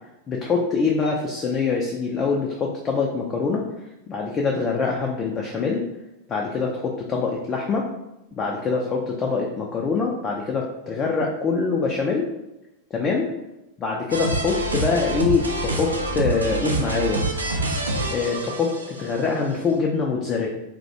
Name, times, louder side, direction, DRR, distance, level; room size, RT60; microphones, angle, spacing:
voice 1, 0.3-3.6 4.1-5.9 6.3-7.9 8.4-12.3 12.9-13.3 13.8-17.2 18.1-20.5, left 4 dB, 25° left, -1 dB, 0.3 m, -24 dB
sound 1, 14.1-19.2, right 2 dB, 80° right, 0.3 m, -26 dB
2.3 x 2.0 x 2.8 m, 0.92 s
figure-of-eight pair, 90°, 0 cm